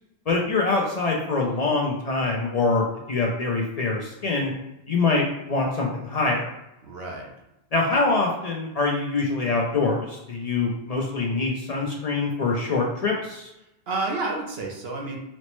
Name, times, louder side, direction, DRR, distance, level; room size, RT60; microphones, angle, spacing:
voice 1, 0.3-4.5 4.9-6.5 7.7-13.5, left 3 dB, 50° left, -1 dB, 0.5 m, -24 dB
voice 2, 6.8-7.3 13.9-15.2, right 3 dB, 75° right, -1 dB, 1.0 m, -30 dB
4.1 x 2.0 x 3.0 m, 0.89 s
omnidirectional pair, 1.0 m